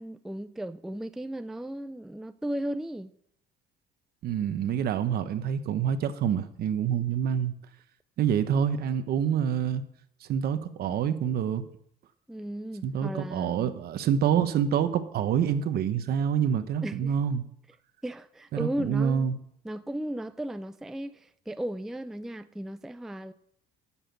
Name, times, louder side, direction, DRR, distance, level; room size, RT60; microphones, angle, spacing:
voice 1, 0.0-3.1 12.3-13.7 16.8-17.2 18.0-19.3 19.6-23.3, right 1 dB, ahead, 0.4 m, -35 dB
voice 2, 4.2-7.5 8.2-9.8 10.2-11.7 12.8-17.4 18.5-19.3, right 8 dB, 60° right, 1.1 m, -27 dB
10.0 x 7.3 x 8.4 m
cardioid pair, 125°, 18 cm